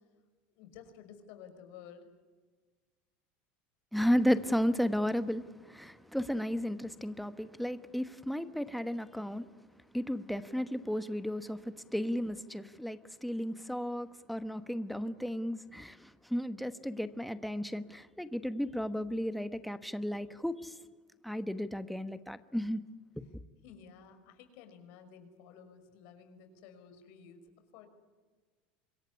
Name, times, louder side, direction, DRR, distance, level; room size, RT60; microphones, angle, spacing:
voice 1, 0.6-2.1 23.6-27.4 27.7-27.9, left 7 dB, 65° left, 8 dB, 5.7 m, -53 dB
voice 2, 3.9-9.5 9.9-20.7 21.2-22.8, equal, ahead, 11 dB, 1.1 m, -34 dB
26.0 x 22.5 x 9.8 m, 1.4 s
supercardioid pair, 140°, 5 cm